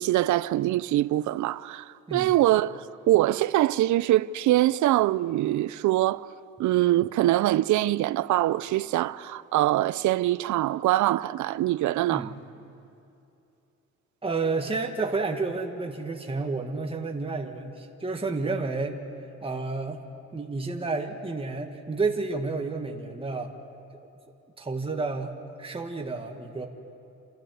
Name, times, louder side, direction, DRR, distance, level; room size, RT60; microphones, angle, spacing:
voice 1, 0.0-6.3 6.6-12.3, right 15 dB, 75° right, 0.6 m, -23 dB
voice 2, 14.2-19.0 19.4-20.0 20.3-23.5 24.6-25.3 25.6-26.7, right 3 dB, 20° right, 1.9 m, -30 dB
28.5 x 12.5 x 9.3 m
cardioid pair, 90°, 30 cm